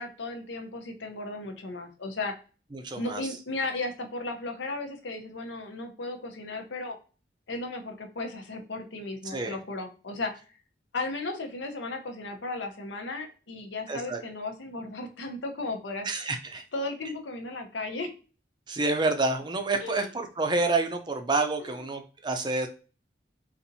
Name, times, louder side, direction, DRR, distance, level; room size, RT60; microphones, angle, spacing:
voice 1, 0.0-2.3 3.0-7.0 7.5-10.3 10.9-16.1 16.7-18.1 19.8-20.1 21.6-21.8, left 2 dB, 75° left, 5 dB, 0.8 m, -35 dB
voice 2, 2.7-3.4 9.2-9.6 13.9-14.2 16.0-16.6 18.7-22.7, right 3 dB, 25° right, 6 dB, 0.5 m, -28 dB
4.1 x 2.5 x 2.7 m, 0.36 s
head